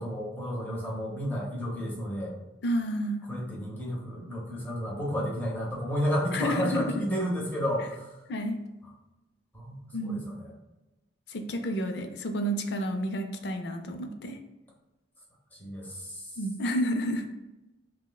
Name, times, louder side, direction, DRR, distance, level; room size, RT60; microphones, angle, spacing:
voice 1, 0.0-2.3 3.3-8.2 9.5-10.5 15.6-16.3, equal, 10° left, -4 dB, 0.8 m, -32 dB
voice 2, 2.6-3.3 6.3-7.0 8.3-8.6 9.9-10.2 11.3-14.4 16.4-17.3, equal, 65° left, 6 dB, 0.4 m, -30 dB
5.8 x 2.2 x 2.3 m, 1.0 s
head